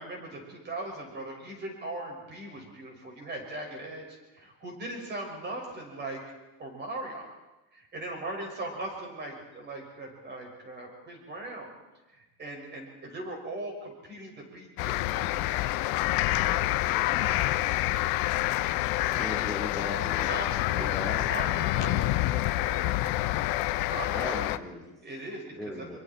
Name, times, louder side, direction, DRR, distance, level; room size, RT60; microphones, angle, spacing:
voice 1, 0.0-4.1 4.3-6.2 6.6-7.3 7.7-11.7 12.1-17.7 19.0-19.4 20.2-20.9 21.3-23.2 23.9-24.4 25.0-25.9, right 2 dB, 30° right, 1 dB, 6.1 m, -40 dB
sound 1, 14.8-24.6, left 16 dB, 70° left, 0.8 m, -27 dB
voice 2, 19.2-20.3 20.8-21.3 24.1-24.9 25.5-26.0, left 2 dB, ahead, -2 dB, 3.0 m, -37 dB
25.0 x 23.0 x 4.5 m, 1.1 s
cardioid pair, 165°, 37 cm